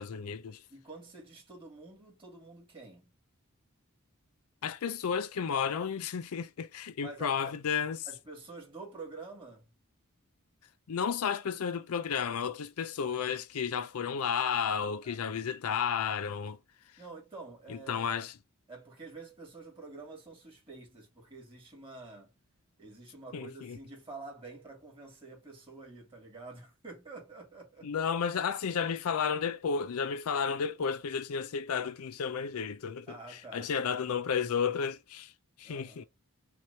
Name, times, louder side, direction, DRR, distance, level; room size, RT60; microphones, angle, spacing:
voice 1, 0.0-0.6 4.6-8.1 10.9-16.6 17.7-18.3 23.3-23.8 27.8-35.3 35.6-36.0, left 6 dB, 75° left, 0.5 m, -32 dB
voice 2, 0.7-3.2 7.0-7.4 8.1-9.7 15.0-15.2 17.0-18.3 18.7-22.3 22.8-27.9 33.1-33.7 35.6-36.1, right 3 dB, 25° right, 2.7 m, -48 dB
5.9 x 3.0 x 2.7 m
head